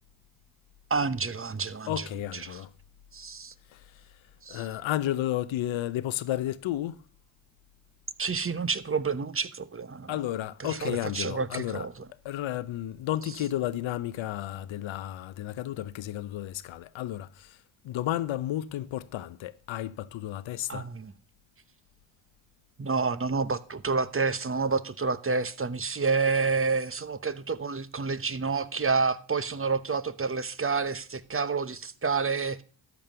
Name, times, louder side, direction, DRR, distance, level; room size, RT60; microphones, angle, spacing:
voice 1, 0.9-2.6 3.1-3.5 4.4-4.7 8.2-10.2 10.6-12.0 20.7-21.1 22.8-32.6, right 4 dB, 30° right, 1.0 m, -29 dB
voice 2, 1.9-2.7 3.7-3.8 4.5-7.0 10.1-11.9 12.2-17.6 17.8-20.9, left 13 dB, 80° left, 0.8 m, -32 dB
13.0 x 5.4 x 7.7 m
cardioid pair, 55°, 46 cm